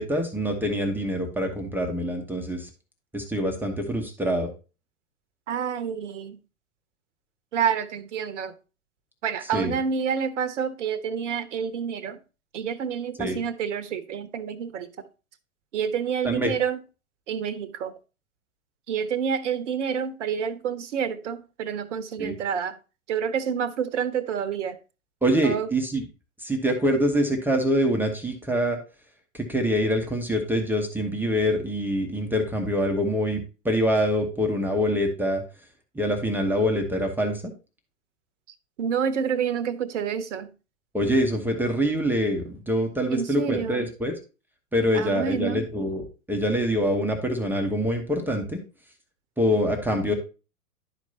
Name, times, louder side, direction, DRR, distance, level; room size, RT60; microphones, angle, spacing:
voice 1, 0.0-2.7 3.1-4.5 9.5-9.8 13.2-13.4 16.2-16.5 22.2-22.3 25.2-26.0 26.4-28.8 29.3-35.4 35.9-37.4 40.9-44.1 44.7-48.6 49.4-50.1, equal, 5° right, 1.0 m, -25 dB
voice 2, 5.5-6.4 7.5-8.5 9.2-12.2 12.5-14.9 15.7-16.8 17.3-17.9 18.9-22.8 23.1-24.8 25.4-25.7 38.8-40.5 43.1-43.9 44.9-45.7, right 7 dB, 55° right, 0.9 m, -28 dB
11.5 x 4.5 x 2.8 m
figure-of-eight pair, 95°, 42 cm